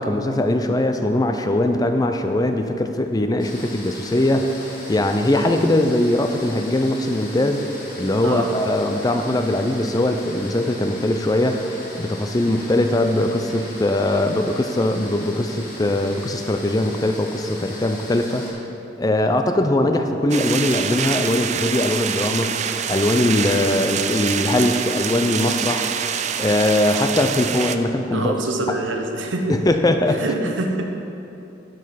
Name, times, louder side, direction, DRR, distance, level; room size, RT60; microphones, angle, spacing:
voice 1, 0.0-7.7 8.0-18.6 19.0-22.6 22.9-26.1 26.4-28.4 29.5-30.5, left 1 dB, 20° left, 6 dB, 0.5 m, -21 dB
sound 1, 3.4-18.5, left 2 dB, 45° left, 1.9 m, -39 dB
voice 2, 8.2-8.6 28.1-29.6 30.1-30.8, right 2 dB, 80° right, 3 dB, 1.0 m, -26 dB
sound 2, 20.3-27.8, right 7 dB, 40° right, 0.4 m, -26 dB
12.0 x 5.3 x 5.7 m, 2.9 s
head